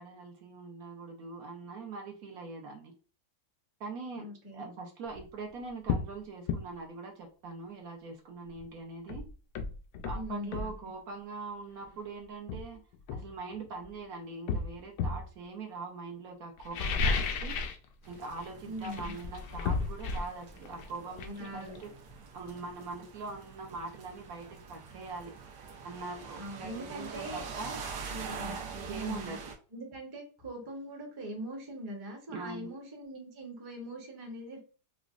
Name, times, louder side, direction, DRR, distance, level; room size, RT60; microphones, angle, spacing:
voice 1, 0.0-2.9 3.8-4.3 4.5-9.2 10.0-12.8 13.1-17.6 18.1-21.9 22.3-25.3 25.8-27.8 28.2-29.5 32.3-32.7, right 4 dB, 65° right, 1 dB, 1.1 m, -42 dB
voice 2, 4.2-4.7 10.1-10.7 18.6-19.1 21.3-21.8 26.4-27.5 28.1-28.6 28.9-29.3 29.7-34.6, equal, 20° right, 0 dB, 0.6 m, -42 dB
sound 1, 5.1-5.3 5.9-6.1 6.5-6.7 8.6-8.7 9.1-10.8 11.8-12.0 12.5-13.9 14.5-15.3 16.6-17.9 18.1-18.5 18.8-22.4 22.7-22.8, left 4 dB, 80° left, 1.2 m, -33 dB
sound 2, 18.0-29.6, right 5 dB, 85° right, 1.3 m, -45 dB
4.9 x 2.1 x 2.4 m, 0.36 s
omnidirectional pair, 1.8 m